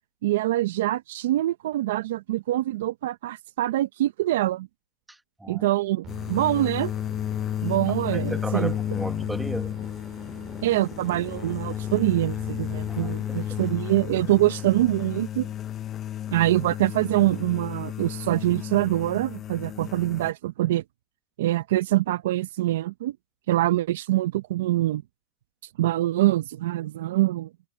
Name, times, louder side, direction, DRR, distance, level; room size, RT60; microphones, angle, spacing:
voice 1, 0.2-4.7 5.5-6.9 7.6-8.7 10.6-15.5 16.3-20.8 21.4-23.2 23.5-25.0 25.8-27.5, right 15 dB, 50° right, 0.7 m, -24 dB
voice 2, 5.1-5.7 8.1-9.7 12.9-13.4, right 1 dB, 5° right, 1.4 m, -35 dB
sound 1, 6.0-13.7, right 13 dB, 25° right, 1.9 m, -46 dB
sound 2, 6.1-20.3, left 11 dB, 20° left, 0.5 m, -32 dB
hypercardioid pair, 160°, 0 cm